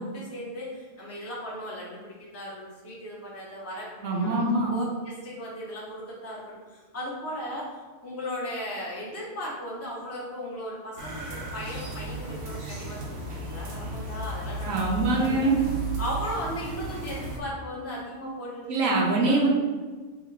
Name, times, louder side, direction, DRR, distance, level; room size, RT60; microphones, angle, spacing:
voice 1, 0.0-7.7 8.0-14.7 15.2-15.3 16.0-18.9 19.2-19.4, equal, 15° left, -6 dB, 0.7 m, -37 dB
voice 2, 4.0-4.7 14.7-15.6 18.7-19.5, right 2 dB, 90° right, -2 dB, 1.1 m, -23 dB
sound 1, 11.0-17.4, right 2 dB, 70° right, 1.2 m, -34 dB
3.1 x 2.9 x 4.5 m, 1.4 s
omnidirectional pair, 1.4 m